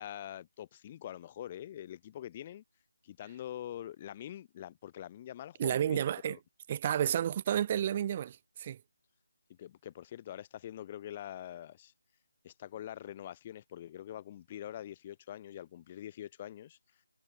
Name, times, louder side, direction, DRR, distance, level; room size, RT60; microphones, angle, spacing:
voice 1, 0.0-2.6 3.0-6.4 9.5-11.9 12.4-16.8, left 11 dB, 20° left, 1.3 m, -44 dB
voice 2, 5.6-6.4 6.7-8.8, right 10 dB, 20° right, 1.1 m, -31 dB
figure-of-eight pair, 170°, 0 cm